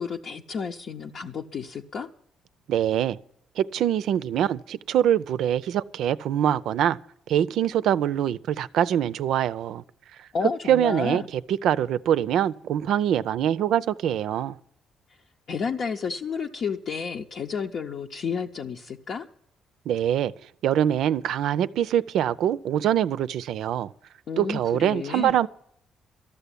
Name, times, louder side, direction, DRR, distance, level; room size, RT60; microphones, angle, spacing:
voice 1, 0.0-2.1 10.3-11.3 15.5-19.3 24.3-25.4, left 5 dB, 60° left, 0.8 m, -31 dB
voice 2, 2.7-3.2 3.6-7.0 7.3-9.8 10.7-14.6 19.9-20.3 20.6-23.9 24.4-25.5, right 10 dB, 80° right, 0.5 m, -24 dB
13.0 x 6.9 x 9.9 m
cardioid pair, 90°, 0 cm